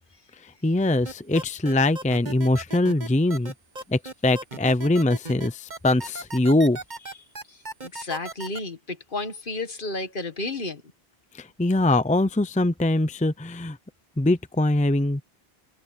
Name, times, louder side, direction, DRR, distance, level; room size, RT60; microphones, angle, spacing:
voice 1, 0.6-3.5 3.9-6.8 11.4-13.8 14.2-15.2, left 2 dB, 10° left, 0.6 m, -22 dB
sound 1, 1.1-8.6, right 2 dB, 45° right, 1.9 m, -36 dB
voice 2, 7.9-10.8, left 2 dB, 55° left, 1.7 m, -32 dB
omnidirectional pair, 1.0 m